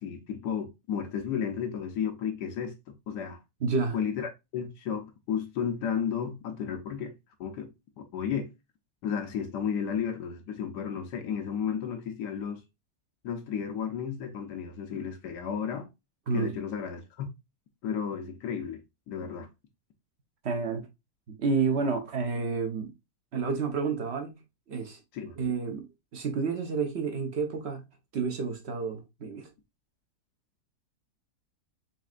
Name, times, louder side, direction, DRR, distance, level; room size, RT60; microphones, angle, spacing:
voice 1, 0.0-3.4 3.9-7.1 7.4-8.5 9.0-12.6 13.2-15.9 16.3-17.3 17.8-19.5 25.1-25.4, left 7 dB, 80° left, 1.3 m, -33 dB
voice 2, 3.6-4.0 16.3-16.5 20.4-20.9 21.3-22.9 23.3-24.4 24.7-25.0 25.4-25.9 26.1-27.8 28.1-29.5, right 4 dB, 50° right, 0.9 m, -30 dB
4.2 x 3.7 x 2.4 m
omnidirectional pair, 1.8 m